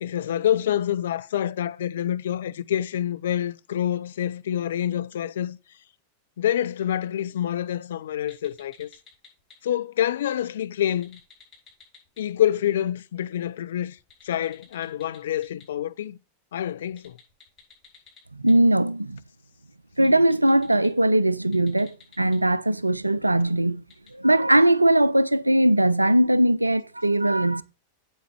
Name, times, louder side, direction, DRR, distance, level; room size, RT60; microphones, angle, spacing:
voice 1, 0.0-5.6 6.4-8.9 9.6-11.2 12.2-14.0 14.2-16.2 16.5-17.2, left 11 dB, 60° left, 0.4 m, -27 dB
sound 1, 8.3-9.5 10.8-12.2 14.0-15.6 16.8-18.5 19.9-20.9 21.4-22.3 23.9-24.1, left 7 dB, 30° left, 5.5 m, -51 dB
voice 2, 18.4-19.2 20.0-23.8 24.1-27.6, right 1 dB, 85° right, 0.4 m, -20 dB
8.3 x 7.5 x 4.3 m
figure-of-eight pair, 90°, 0 cm